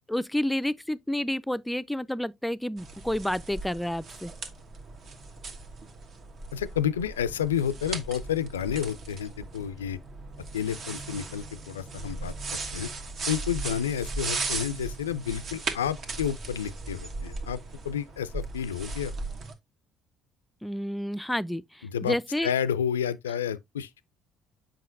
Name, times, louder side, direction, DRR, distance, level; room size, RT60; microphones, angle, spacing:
voice 1, 0.1-4.3 20.6-22.5, left 1 dB, 5° left, 0.4 m, -30 dB
sound 1, 2.8-19.5, right 3 dB, 50° right, 1.2 m, -37 dB
voice 2, 6.5-10.0 10.5-12.9 13.3-17.6 17.8-19.1 21.8-22.2 22.4-24.0, left 9 dB, 80° left, 0.4 m, -30 dB
7.5 x 5.3 x 2.5 m
figure-of-eight pair, 50°, 0 cm